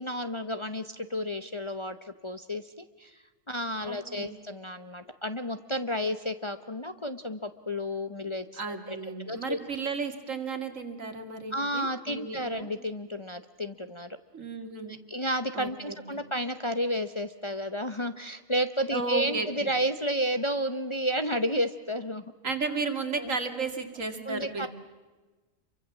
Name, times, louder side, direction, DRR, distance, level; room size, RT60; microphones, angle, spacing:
voice 1, 0.0-3.2 3.5-9.0 9.3-9.6 11.5-14.2 14.9-22.2 23.2-23.3 24.3-24.7, equal, 25° left, 9 dB, 0.8 m, -31 dB
voice 2, 3.8-4.4 8.6-12.7 14.3-15.0 15.5-16.2 18.9-19.7 22.4-24.7, right 4 dB, 75° right, 6 dB, 2.7 m, -34 dB
27.5 x 24.0 x 7.4 m, 1.3 s
omnidirectional pair, 1.4 m